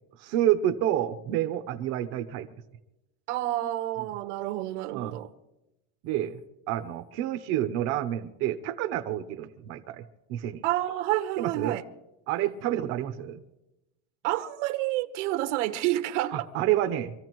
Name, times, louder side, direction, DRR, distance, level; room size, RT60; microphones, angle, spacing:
voice 1, 0.2-2.5 4.9-5.2 6.0-6.4 6.7-10.0 10.3-10.6 11.4-11.8 12.3-13.4 16.3-17.1, right 12 dB, 45° right, 0.8 m, -28 dB
voice 2, 3.3-5.3 10.6-11.8 14.2-16.4, right 15 dB, 70° right, 1.2 m, -29 dB
25.0 x 14.5 x 3.1 m
cardioid pair, 165°, 37 cm